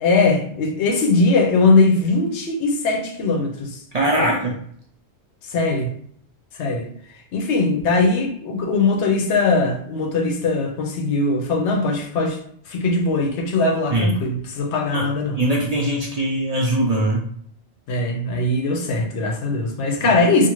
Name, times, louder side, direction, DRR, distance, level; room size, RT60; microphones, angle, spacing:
voice 1, 0.0-3.8 4.2-4.3 5.5-5.9 6.5-6.8 7.3-12.4 12.7-15.4 17.9-20.5, left 3 dB, 90° left, 0.9 m, -20 dB
voice 2, 3.9-4.6 13.9-14.1 14.9-15.1 15.4-17.2 20.0-20.1, right 1 dB, 55° right, 0.4 m, -21 dB
2.5 x 2.4 x 3.0 m
omnidirectional pair, 1.1 m